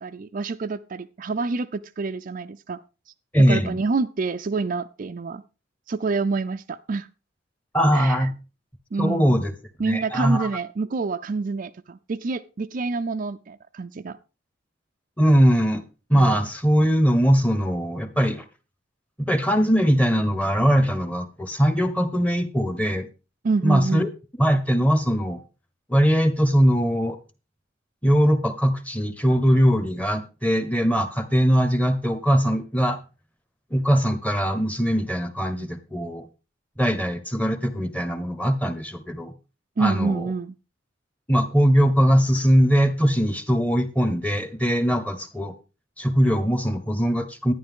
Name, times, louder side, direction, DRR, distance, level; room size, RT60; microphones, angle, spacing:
voice 1, 0.0-2.8 3.5-5.4 5.9-7.1 7.9-8.2 8.9-9.4 9.8-14.2 16.1-16.4 23.4-24.1 39.8-40.6, right 4 dB, 45° right, 0.4 m, -27 dB
voice 2, 3.3-3.8 7.7-8.3 9.0-9.5 9.8-10.5 15.2-15.8 16.1-18.4 19.2-23.1 23.6-24.1 24.4-25.4 25.9-27.2 28.0-33.0 33.7-36.3 36.8-39.3 39.8-40.3 41.3-45.5 46.0-47.5, equal, 10° left, 1.1 m, -21 dB
11.5 x 10.5 x 3.6 m
head